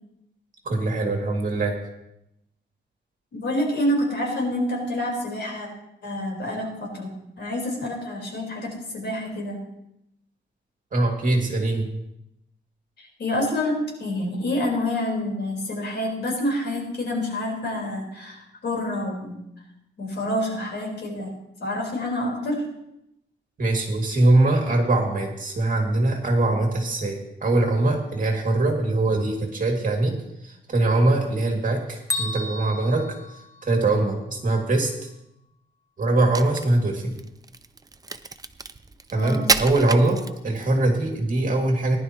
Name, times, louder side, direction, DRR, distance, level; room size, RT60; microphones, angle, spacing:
voice 1, 0.6-1.7 10.9-11.8 23.6-33.1 33.6-34.9 36.0-37.1 39.1-42.0, right 2 dB, 45° right, 1 dB, 2.5 m, -22 dB
voice 2, 3.3-5.7 6.0-9.6 13.0-19.4 20.0-21.3 21.6-22.7 39.1-39.5, left 1 dB, 65° left, -1 dB, 4.5 m, -27 dB
Bell, 32.1-34.1, left 2 dB, 15° left, 0.9 m, -33 dB
Crack, 36.1-40.8, right 4 dB, 20° right, 0.5 m, -29 dB
19.0 x 11.5 x 3.1 m, 0.84 s
wide cardioid pair, 140°, 19 cm